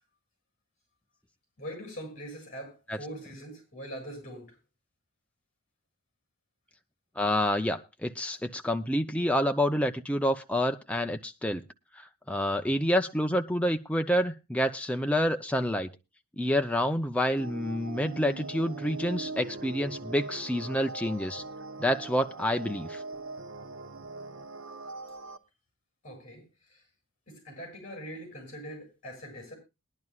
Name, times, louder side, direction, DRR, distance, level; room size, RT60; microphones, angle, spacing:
voice 1, 1.6-4.6 26.0-26.8 27.3-29.6, equal, 35° left, 4 dB, 7.9 m, -42 dB
voice 2, 7.2-11.6 12.3-15.9 16.4-21.4 21.8-23.0, equal, 5° left, 6 dB, 0.6 m, -28 dB
sound 1, 17.4-25.4, right 3 dB, 65° right, 1.0 m, -41 dB
21.5 x 11.0 x 2.4 m, 0.26 s
head